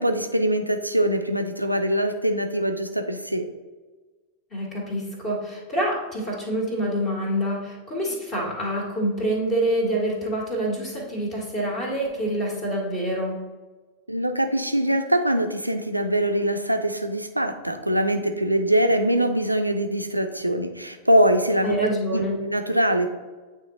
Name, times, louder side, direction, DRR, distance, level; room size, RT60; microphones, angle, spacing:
voice 1, 0.0-3.5 14.1-21.8 22.1-23.1, right 1 dB, 85° right, 6 dB, 0.5 m, -23 dB
voice 2, 4.5-13.4 21.6-22.4, right 1 dB, 30° left, -2 dB, 1.8 m, -26 dB
8.9 x 3.2 x 3.8 m, 1.3 s
figure-of-eight pair, 90°, 0 cm